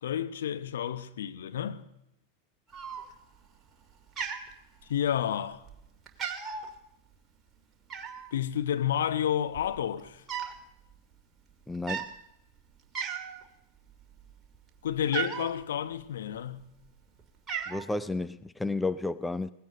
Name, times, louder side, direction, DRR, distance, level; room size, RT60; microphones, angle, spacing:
voice 1, 0.0-1.8 4.9-5.6 8.3-10.2 14.8-16.6, left 9 dB, 60° left, 1.0 m, -30 dB
Cat, 2.7-3.4 3.7-5.2 5.6-5.8 6.1-6.7 7.9-8.3 9.1-9.2 9.4-10.6 10.9-11.1 11.7-12.1 12.6-12.7 12.9-13.5 13.9-15.5 16.3-16.9 17.2-17.8, right 7 dB, 20° right, 2.2 m, -36 dB
voice 2, 11.7-12.1 17.7-19.5, left 2 dB, 5° left, 0.4 m, -32 dB
18.5 x 15.5 x 3.9 m
figure-of-eight pair, 90°, 0 cm